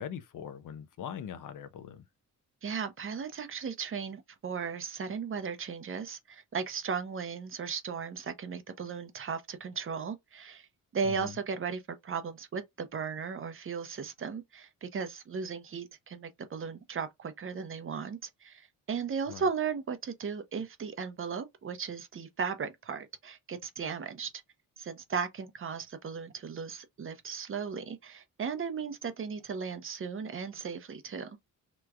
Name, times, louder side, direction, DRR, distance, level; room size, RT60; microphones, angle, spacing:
voice 1, 0.0-2.0 11.0-11.3 19.3-19.5, left 8 dB, 65° left, 0.6 m, -41 dB
voice 2, 2.6-10.7 10.9-24.3 24.8-31.3, right 6 dB, 40° right, 0.6 m, -36 dB
3.0 x 2.3 x 3.5 m
cardioid pair, 100°, 33 cm